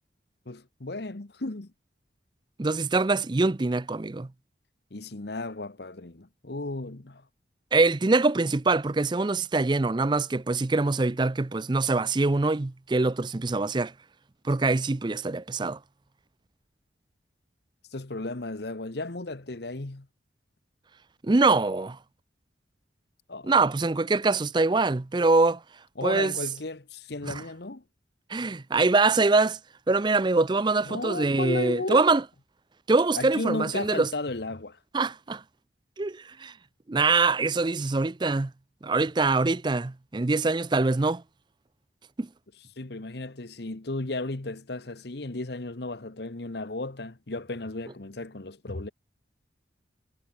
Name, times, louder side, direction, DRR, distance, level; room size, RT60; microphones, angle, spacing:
voice 1, 0.5-1.7 4.9-7.3 17.9-20.1 23.3-23.5 26.0-27.8 30.8-32.1 33.2-34.8 42.8-48.9, left 2 dB, 55° left, 1.1 m, -34 dB
voice 2, 2.6-4.3 7.7-13.9 14.4-15.8 21.2-22.0 23.4-25.6 26.0-26.3 27.3-27.4 28.3-29.6 29.9-32.2 32.9-34.1 34.9-35.4 36.0-36.5 36.9-38.5 38.8-41.2 42.2-42.3, right 3 dB, 25° right, 0.4 m, -24 dB
head